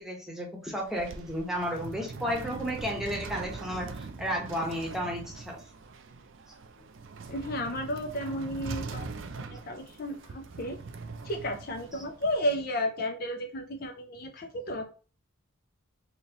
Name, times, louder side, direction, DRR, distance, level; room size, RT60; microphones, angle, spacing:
voice 1, 0.0-5.6, equal, ahead, -1 dB, 1.0 m, -33 dB
sound 1, 0.7-12.6, right 4 dB, 60° right, 0.4 m, -42 dB
voice 2, 7.3-9.1 9.5-10.8 11.2-14.8, equal, 45° left, 4 dB, 0.4 m, -33 dB
4.1 x 2.9 x 2.8 m, 0.37 s
head